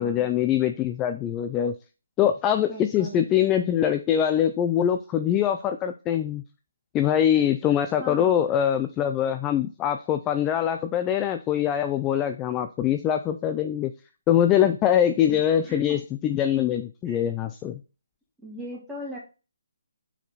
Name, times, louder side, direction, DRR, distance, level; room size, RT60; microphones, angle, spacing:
voice 1, 0.0-1.7 2.2-6.4 6.9-13.9 14.3-17.8, left 10 dB, 15° left, 8 dB, 0.4 m, -23 dB
voice 2, 2.7-3.2 8.0-8.5 15.3-16.0 17.0-17.2 18.4-19.2, equal, 5° right, -6 dB, 3.0 m, -38 dB
6.6 x 5.0 x 4.1 m, 0.32 s
figure-of-eight pair, 150°, 0 cm